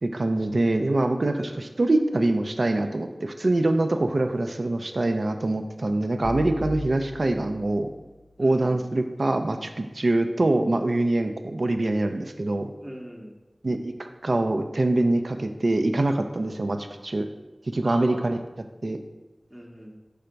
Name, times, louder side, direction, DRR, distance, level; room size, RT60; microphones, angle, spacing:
voice 1, 0.0-7.9 8.4-12.7 13.6-17.3 17.7-18.4 18.8-19.0, right 2 dB, 65° right, 7 dB, 0.4 m, -24 dB
sound 1, 6.2-8.4, left 3 dB, 75° left, 0.5 m, -38 dB
voice 2, 8.4-8.8 12.8-13.4 17.8-18.3 19.5-20.0, equal, 15° right, -1 dB, 0.7 m, -40 dB
5.6 x 3.3 x 5.1 m, 1.1 s
wide cardioid pair, 50°, 0 cm